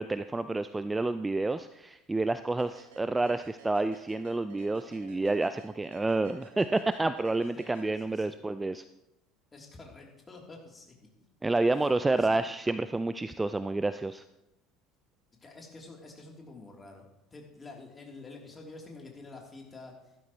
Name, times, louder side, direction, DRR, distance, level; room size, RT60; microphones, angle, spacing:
voice 1, 0.0-8.8 11.4-14.2, right 2 dB, 15° right, 12 dB, 0.5 m, -29 dB
sound 1, 2.6-8.4, right 6 dB, 65° right, 1.5 m, -54 dB
voice 2, 7.5-8.4 9.5-10.9 11.8-11.9 12.2-12.4 15.4-17.0 17.3-20.3, left 3 dB, 20° left, 0 dB, 3.2 m, -48 dB
15.5 x 12.5 x 3.1 m, 0.91 s
figure-of-eight pair, 65°, 0 cm